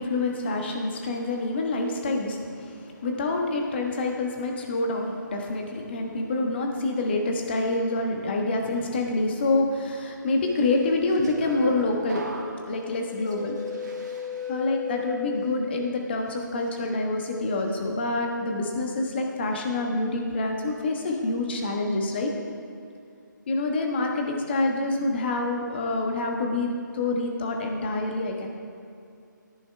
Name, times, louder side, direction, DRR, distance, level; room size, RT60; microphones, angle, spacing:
voice 1, 0.0-12.3 12.7-13.6 14.5-22.3 23.5-28.5, left 2 dB, 30° left, 2 dB, 1.2 m, -27 dB
sound 1, 10.8-15.8 16.2-16.7, left 5 dB, 60° right, 1.8 m, -35 dB
13.0 x 10.5 x 3.4 m, 2.5 s
hypercardioid pair, 165°, 11 cm